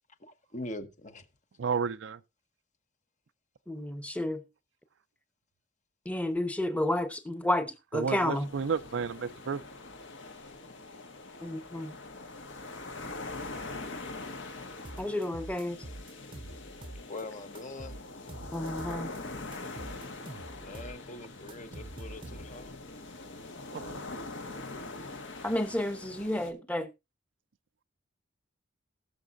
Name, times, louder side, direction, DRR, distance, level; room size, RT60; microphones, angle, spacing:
voice 1, 0.2-1.3 17.1-18.0 20.5-22.7, left 2 dB, 40° left, 1.0 m, -43 dB
voice 2, 1.6-2.2 7.9-9.6 23.7-24.1, right 6 dB, 65° right, 0.5 m, -32 dB
voice 3, 3.7-4.4 6.0-8.5 11.4-11.9 15.0-15.8 18.5-19.1 25.4-26.9, left 1 dB, 5° left, 0.9 m, -31 dB
sound 1, 8.0-26.5, left 2 dB, 70° left, 1.4 m, -43 dB
sound 2, 14.8-17.2 17.5-19.2 19.5-22.7, right 1 dB, 25° right, 0.7 m, -45 dB
19.5 x 6.7 x 2.5 m
head